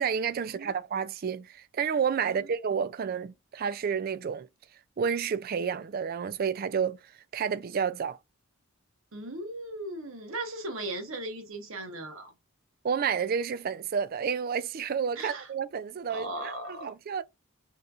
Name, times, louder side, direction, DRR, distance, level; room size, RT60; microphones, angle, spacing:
voice 1, 0.0-4.5 5.0-7.0 7.3-8.2 12.8-17.2, right 6 dB, 40° right, 0.3 m, -30 dB
voice 2, 9.1-12.3 15.2-15.5 16.1-16.9, right 2 dB, 65° right, 1.3 m, -37 dB
5.4 x 3.0 x 2.4 m
head